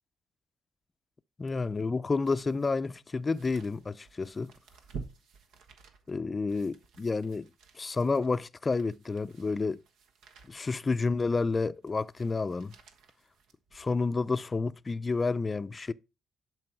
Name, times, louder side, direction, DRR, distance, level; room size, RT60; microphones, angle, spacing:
voice 1, 1.4-4.5 6.1-7.5 7.8-9.8 10.5-12.7 13.7-15.9, left 4 dB, 30° left, 0.4 m, -30 dB
sound 1, 1.5-14.1 14.6-14.7, right 5 dB, 85° right, 1.3 m, -51 dB
11.0 x 4.8 x 4.6 m
cardioid pair, 90°, 0 cm